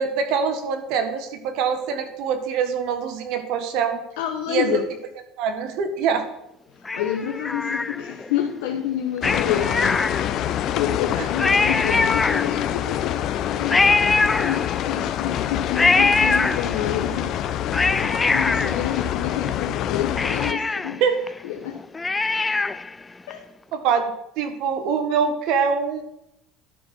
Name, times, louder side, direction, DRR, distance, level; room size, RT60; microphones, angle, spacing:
voice 1, 0.0-4.0 4.5-4.7 5.4-6.2 21.0-21.2 23.7-26.0, right 6 dB, 70° right, 7 dB, 1.5 m, -24 dB
voice 2, 4.2-4.9 6.7-14.0 14.4-17.4 18.3-21.0 21.4-21.8 23.3-23.5, left 9 dB, 85° left, 3 dB, 1.0 m, -28 dB
Cat, 6.9-8.3 9.2-10.6 11.0-11.1 11.3-12.9 13.7-15.1 15.7-17.0 17.5-19.5 19.8-19.9 20.2-23.0 23.3-23.4, left 3 dB, 20° left, 0.4 m, -23 dB
sound 1, 9.2-20.5, left 11 dB, 60° left, 0.6 m, -26 dB
11.5 x 4.4 x 6.2 m, 0.84 s
supercardioid pair, 95°, 0 cm